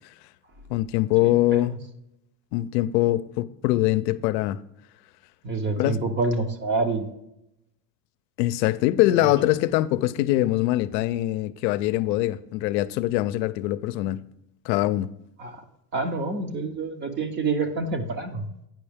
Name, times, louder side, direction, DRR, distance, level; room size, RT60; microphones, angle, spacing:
voice 1, 0.7-1.7 2.5-4.6 5.8-6.0 8.4-14.2 14.6-15.1, left 16 dB, 80° left, 0.6 m, -23 dB
voice 2, 1.2-1.8 5.4-7.1 9.1-9.3 15.4-15.6 15.9-18.5, right 3 dB, 25° right, 0.6 m, -27 dB
9.2 x 5.4 x 3.5 m
supercardioid pair, 150°, 49 cm